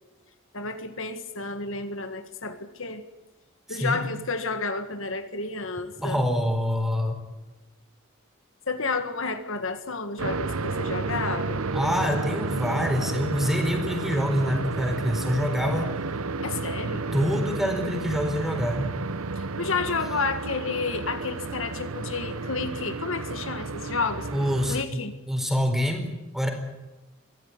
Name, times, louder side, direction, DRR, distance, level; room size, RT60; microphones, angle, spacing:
voice 1, 0.5-3.0 3.7-6.2 8.7-11.6 16.4-17.0 19.4-24.3 24.7-25.2, left 4 dB, 65° left, 8 dB, 1.8 m, -31 dB
voice 2, 3.7-4.0 6.0-7.2 11.7-15.9 17.1-18.9 24.3-25.0 25.3-26.1 26.3-26.5, equal, ahead, 5 dB, 4.3 m, -26 dB
sound 1, 10.2-24.8, right 3 dB, 85° right, 0.9 m, -31 dB
24.0 x 16.5 x 9.6 m, 1.1 s
head